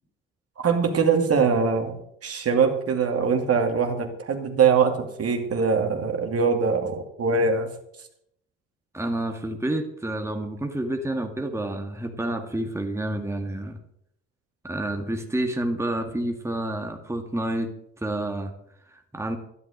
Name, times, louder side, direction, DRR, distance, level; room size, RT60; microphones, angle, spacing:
voice 1, 0.6-2.0 2.2-7.7, right 5 dB, 45° right, 4 dB, 2.6 m, -22 dB
voice 2, 8.9-13.8 14.6-18.5 18.9-19.4, right 1 dB, 10° right, 4 dB, 2.0 m, -29 dB
12.5 x 11.0 x 6.6 m, 0.74 s
hypercardioid pair, 50°, 33 cm